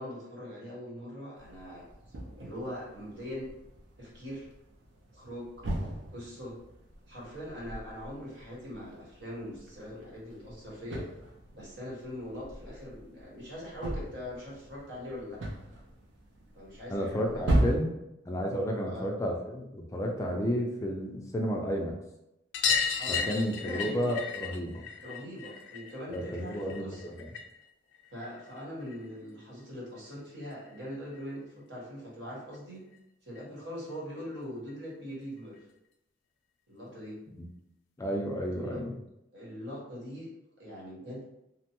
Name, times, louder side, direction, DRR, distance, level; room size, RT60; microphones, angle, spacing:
voice 1, 0.0-1.8 2.4-3.5 4.0-4.5 5.1-5.5 6.1-6.6 7.1-11.1 11.5-15.4 16.5-17.7 18.9-19.1 23.0-24.1 25.0-27.1 28.1-32.8 33.2-35.6 36.7-37.2 38.6-38.8 39.3-40.3 40.6-41.2, equal, 70° right, -5 dB, 1.2 m, -42 dB
sound 1, 1.4-17.8, right 1 dB, 90° right, 0.5 m, -37 dB
voice 2, 16.9-17.9 18.3-21.9 23.1-24.9 26.1-27.3 37.3-37.5 38.0-38.9, equal, 15° left, 0 dB, 0.3 m, -32 dB
sound 2, 22.5-27.6 27.9-29.1 30.4-30.5 30.7-30.8 31.2-31.3 32.5-32.6 32.9-33.0 33.3-33.4 34.7-34.8 35.6-35.7, left 6 dB, 85° left, 0.4 m, -34 dB
2.9 x 2.1 x 2.9 m, 0.87 s
head